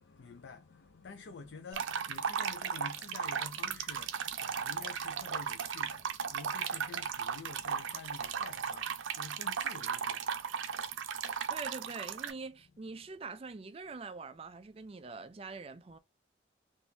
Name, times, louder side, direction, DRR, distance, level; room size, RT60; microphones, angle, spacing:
voice 1, 0.0-10.2 12.7-12.8, left 4 dB, 70° left, 0.5 m, -49 dB
sound 1, 1.7-12.3, right 7 dB, 85° right, 0.5 m, -36 dB
voice 2, 11.5-16.0, right 4 dB, 30° right, 0.4 m, -44 dB
3.4 x 2.5 x 2.8 m
head